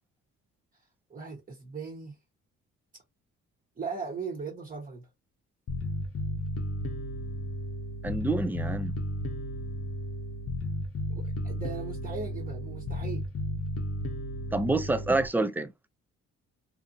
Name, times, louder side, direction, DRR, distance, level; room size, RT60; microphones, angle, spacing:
voice 1, 1.1-2.1 3.8-5.0 11.1-13.2, right 5 dB, 25° right, 1.2 m, -38 dB
Bass guitar, 5.7-15.3, left 1 dB, 50° left, 0.7 m, -34 dB
voice 2, 8.0-8.9 14.5-15.7, right 2 dB, 5° right, 0.3 m, -27 dB
2.6 x 2.5 x 2.6 m
cardioid pair, 90°, 30 cm